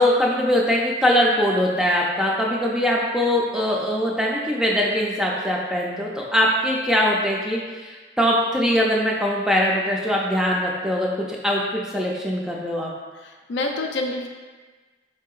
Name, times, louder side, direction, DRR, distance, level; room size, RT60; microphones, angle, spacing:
voice 1, 0.0-12.9, equal, 5° right, -3 dB, 0.3 m, -22 dB
voice 2, 13.1-14.3, left 2 dB, 85° left, 3 dB, 0.4 m, -28 dB
4.5 x 2.7 x 2.3 m, 1.3 s
head